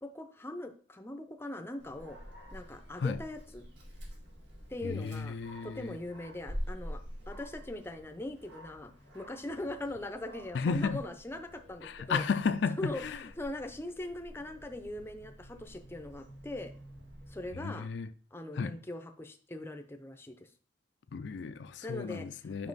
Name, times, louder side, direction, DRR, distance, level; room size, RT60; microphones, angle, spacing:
voice 1, 0.0-2.2 2.5-3.7 4.7-5.4 5.6-7.0 7.3-12.2 12.8-16.7 17.3-17.9 18.3-20.5 21.8-22.7, left 1 dB, 15° left, 0.6 m, -41 dB
Dog, 1.8-17.5, equal, 85° right, 1.8 m, -47 dB
voice 2, 4.8-6.0 10.5-11.0 11.8-13.2 17.5-18.1 18.5-18.8 21.1-22.7, left 5 dB, 75° left, 0.4 m, -33 dB
5.4 x 5.3 x 4.0 m
head